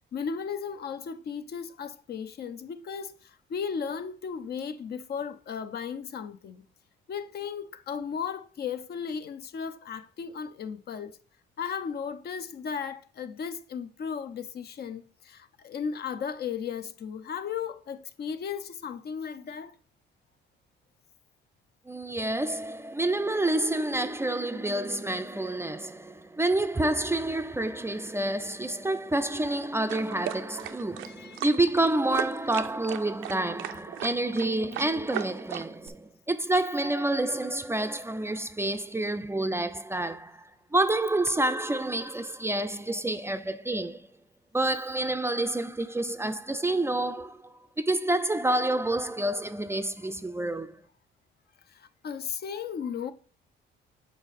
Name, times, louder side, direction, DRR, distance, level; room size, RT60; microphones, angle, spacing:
voice 1, 0.1-6.6 7.1-11.2 11.6-19.7 31.0-31.4 51.7-53.1, left 7 dB, 55° left, 0.6 m, -35 dB
voice 2, 21.9-44.1 44.5-50.8, right 2 dB, 10° right, 0.4 m, -28 dB
sound 1, 29.9-35.9, right 12 dB, 85° right, 0.5 m, -37 dB
6.8 x 4.1 x 4.1 m
cardioid pair, 90°, 20 cm